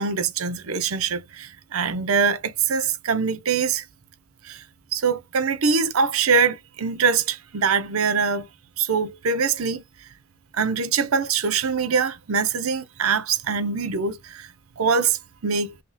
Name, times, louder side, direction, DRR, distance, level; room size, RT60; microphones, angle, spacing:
voice 1, 0.0-3.8 4.4-4.6 4.9-8.5 8.8-9.8 10.5-14.5 14.8-15.2 15.4-15.7, right 5 dB, 80° right, 0.7 m, -23 dB
5.2 x 2.8 x 2.2 m
head